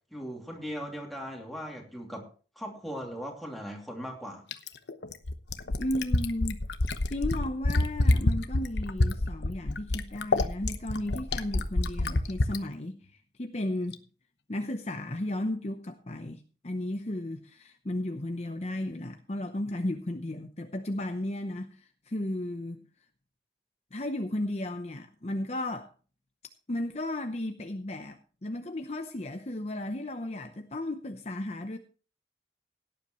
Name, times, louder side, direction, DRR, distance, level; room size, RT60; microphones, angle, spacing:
voice 1, 0.1-2.3 2.6-4.4, equal, ahead, 2.8 m, -38 dB
Fill (with liquid), 4.5-12.6 13.9-14.0, left 2 dB, 80° left, 1.0 m, -26 dB
voice 2, 5.8-6.6 7.1-14.0 14.5-22.8 23.9-25.9 26.7-31.8, left 1 dB, 35° left, 0.8 m, -34 dB
17.5 x 10.5 x 3.1 m
head